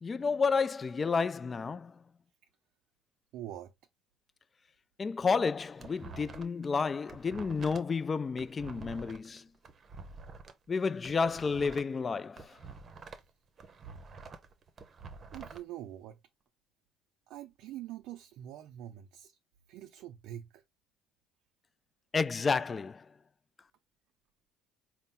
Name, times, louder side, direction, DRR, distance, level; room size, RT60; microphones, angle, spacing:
voice 1, 0.0-1.9 5.0-9.5 10.7-12.6 22.1-23.1, left 5 dB, 30° left, 0.3 m, -31 dB
voice 2, 3.3-3.7 15.3-16.2 17.3-19.4 19.7-20.6, right 12 dB, 75° right, 0.4 m, -44 dB
sound 1, 5.4-6.7 6.9-10.5 10.9-13.3 13.6-15.6, right 4 dB, 40° right, 0.7 m, -48 dB
4.1 x 2.1 x 3.7 m
supercardioid pair, 80°, 0 cm